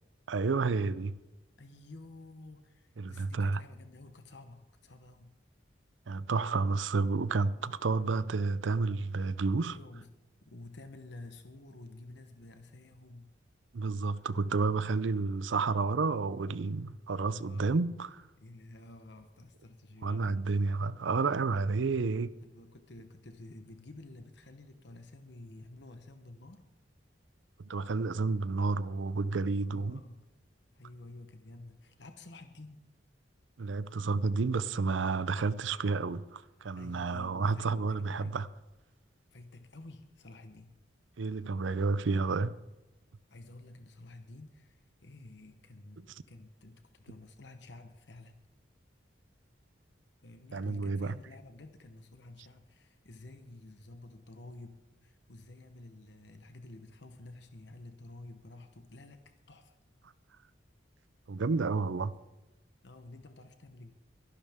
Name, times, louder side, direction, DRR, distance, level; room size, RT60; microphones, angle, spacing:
voice 1, 0.3-1.1 3.0-3.6 6.1-9.8 13.7-18.2 20.0-22.3 27.6-30.0 33.6-38.5 41.2-42.6 46.0-46.1 50.5-51.1 61.3-62.1, right 4 dB, 80° right, 0.6 m, -30 dB
voice 2, 1.6-5.3 9.6-10.2 10.4-13.3 17.3-17.7 18.4-20.5 22.4-26.6 29.6-30.3 30.7-32.8 36.8-38.4 39.3-40.7 43.3-48.4 50.2-59.8 62.8-63.9, left 2 dB, 65° left, 1.0 m, -51 dB
23.0 x 12.0 x 3.6 m
head